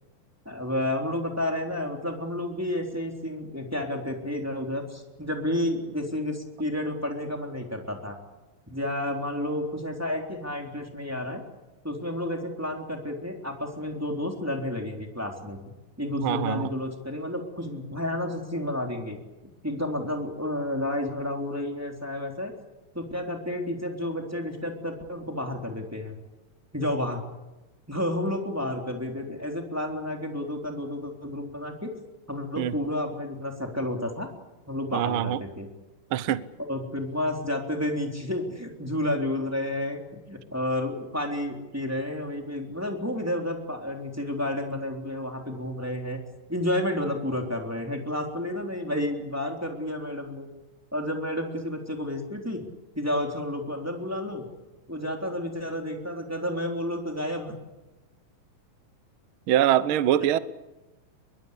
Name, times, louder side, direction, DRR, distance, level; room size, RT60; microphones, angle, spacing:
voice 1, 0.4-8.2 8.7-11.4 11.8-15.6 16.0-19.2 19.6-22.5 22.9-26.2 26.7-27.2 27.9-31.9 32.3-34.3 34.7-35.7 36.6-40.0 40.3-46.2 46.5-50.5 50.9-52.6 52.9-54.5 54.9-57.6, left 1 dB, 5° right, 3.3 m, -31 dB
voice 2, 16.2-16.7 32.6-32.7 34.9-35.4 36.1-36.4 59.5-60.4, right 11 dB, 80° right, 1.1 m, -23 dB
23.0 x 22.0 x 8.4 m
omnidirectional pair, 3.8 m